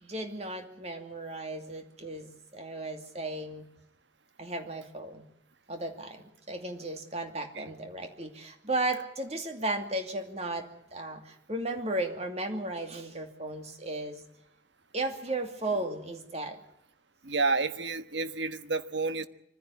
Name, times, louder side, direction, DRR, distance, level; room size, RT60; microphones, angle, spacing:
voice 1, 0.0-3.7 4.4-5.3 5.7-14.2 14.9-16.6, right 2 dB, 35° right, 5 dB, 2.6 m, -35 dB
voice 2, 17.2-19.3, right 3 dB, 70° right, 11 dB, 1.4 m, -30 dB
24.5 x 15.5 x 9.6 m, 0.76 s
head